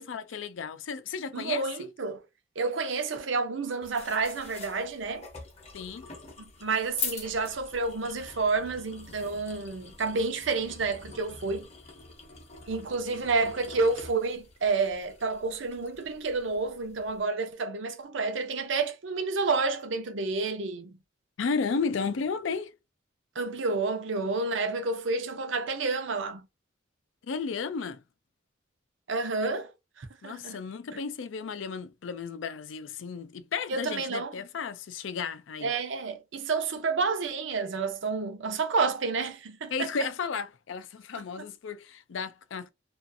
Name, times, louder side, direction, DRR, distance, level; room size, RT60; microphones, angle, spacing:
voice 1, 0.0-1.6 5.7-6.1 21.4-22.7 27.3-28.0 30.2-35.7 39.7-42.7, left 5 dB, 75° left, 0.4 m, -33 dB
voice 2, 1.3-2.2 2.6-5.3 6.4-11.7 12.7-21.0 23.3-26.5 29.1-29.7 30.0-30.6 33.7-34.4 35.6-39.9 41.4-41.5, right 4 dB, 70° right, 0.7 m, -30 dB
sound 1, 3.8-17.2, left 5 dB, 35° left, 0.7 m, -44 dB
2.5 x 2.5 x 2.5 m
head